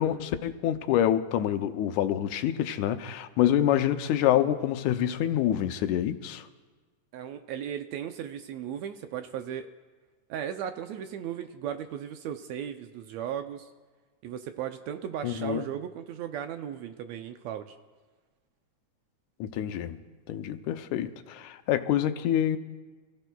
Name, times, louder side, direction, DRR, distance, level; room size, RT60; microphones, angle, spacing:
voice 1, 0.0-6.5 15.2-15.6 19.4-20.0 20.3-22.6, left 11 dB, 80° left, 2.1 m, -26 dB
voice 2, 7.1-9.7 10.3-13.7 14.2-17.8, right 9 dB, 75° right, 1.7 m, -36 dB
28.0 x 15.0 x 2.3 m
omnidirectional pair, 3.5 m